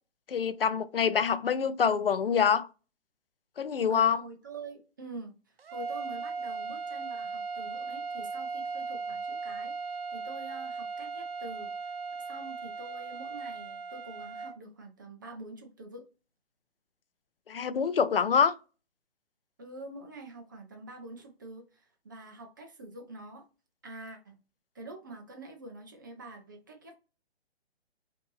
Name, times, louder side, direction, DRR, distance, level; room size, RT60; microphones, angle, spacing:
voice 1, 0.3-2.7 3.6-4.2 17.5-18.5, left 6 dB, 60° left, 0.5 m, -26 dB
voice 2, 3.9-11.9 12.2-16.0 19.6-23.4 23.8-24.4 24.7-26.9, right 2 dB, 20° right, 0.5 m, -46 dB
sound 1, 5.6-14.5, right 4 dB, 65° right, 0.6 m, -37 dB
5.0 x 2.6 x 3.2 m
figure-of-eight pair, 130°, 32 cm